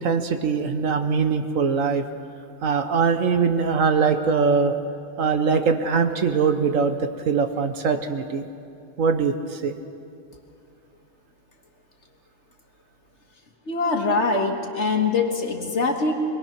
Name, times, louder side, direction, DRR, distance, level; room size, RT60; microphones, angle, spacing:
voice 1, 0.0-2.0 2.6-4.7 5.2-8.5 9.0-9.7, right 5 dB, 65° right, 7 dB, 1.4 m, -22 dB
voice 2, 13.7-16.1, left 3 dB, 50° left, 2 dB, 2.0 m, -23 dB
22.0 x 21.0 x 6.0 m, 2.7 s
omnidirectional pair, 1.5 m